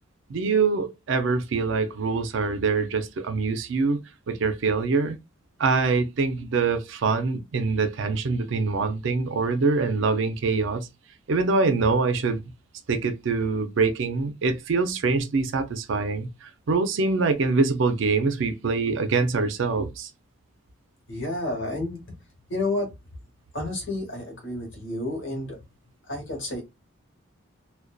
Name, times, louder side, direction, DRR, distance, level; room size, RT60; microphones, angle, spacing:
voice 1, 0.3-4.0 4.3-5.2 5.6-10.9 11.3-12.4 12.9-20.1, right 4 dB, 60° right, 0.4 m, -24 dB
voice 2, 21.1-22.1 22.5-22.9 23.5-25.7 26.1-26.6, left 2 dB, 60° left, 1.1 m, -30 dB
2.5 x 2.2 x 2.2 m
head